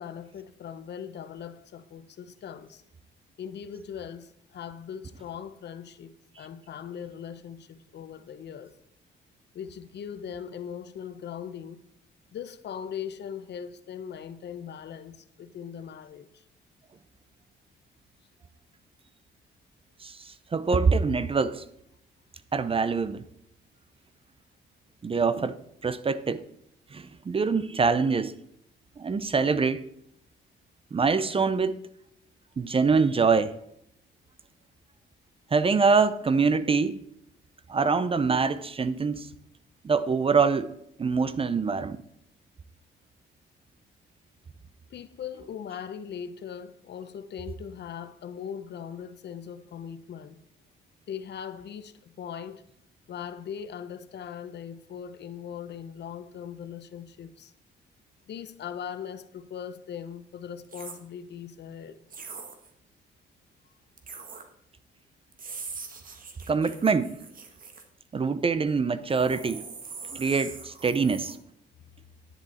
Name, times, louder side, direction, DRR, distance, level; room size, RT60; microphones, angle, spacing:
voice 1, 0.0-2.8 3.4-8.7 9.5-11.8 12.3-16.4 44.9-50.4 51.1-52.6 53.1-57.5 58.3-62.3, left 8 dB, 60° left, 0.8 m, -40 dB
voice 2, 20.0-21.6 22.5-23.3 25.0-25.6 25.8-26.4 26.9-28.3 29.0-29.8 30.9-31.8 32.6-33.5 35.5-37.0 37.7-39.3 39.8-40.7 41.0-42.0 66.5-67.2 68.1-69.6 70.1-71.4, right 5 dB, 30° right, 0.6 m, -24 dB
sound 1, 60.6-61.0 62.1-62.7 64.0-64.4 65.3-67.8 69.1-71.4, right 5 dB, 45° right, 1.5 m, -42 dB
10.0 x 7.8 x 4.3 m
cardioid pair, 90°, 20 cm